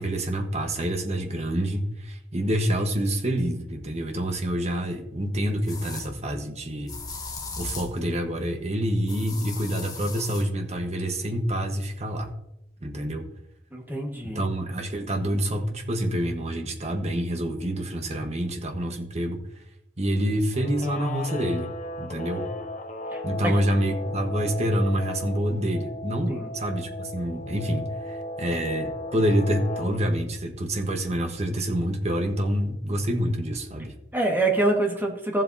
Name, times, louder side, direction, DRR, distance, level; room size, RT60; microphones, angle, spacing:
voice 1, 0.0-7.0 7.6-12.3 12.8-13.3 14.2-19.4 20.0-21.7 22.0-22.5 23.2-34.0, equal, 40° right, 4 dB, 1.3 m, -27 dB
sound 1, 4.5-4.6 5.7-6.1 6.9-8.0 9.1-10.5, left 4 dB, 20° left, 1.4 m, -37 dB
voice 2, 13.7-14.4 23.1-23.7 26.3-26.5 34.1-35.4, right 2 dB, 10° right, 0 dB, 1.6 m, -26 dB
Guitar, 20.5-30.0, left 1 dB, 45° left, 0.6 m, -36 dB
15.0 x 7.6 x 2.8 m, 0.80 s
head